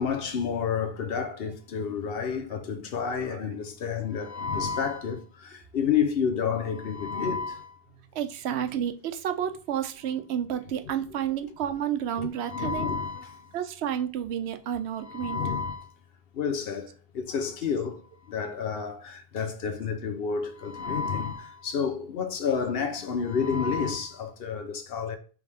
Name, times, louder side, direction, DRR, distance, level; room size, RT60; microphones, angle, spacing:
voice 1, 0.0-7.8 12.2-13.5 15.0-15.9 16.3-18.0 18.3-25.2, left 6 dB, 65° left, 0.9 m, -30 dB
voice 2, 8.1-13.0 13.5-15.4 18.7-18.8, right 9 dB, 85° right, 0.9 m, -31 dB
4.7 x 3.3 x 3.4 m
omnidirectional pair, 1.1 m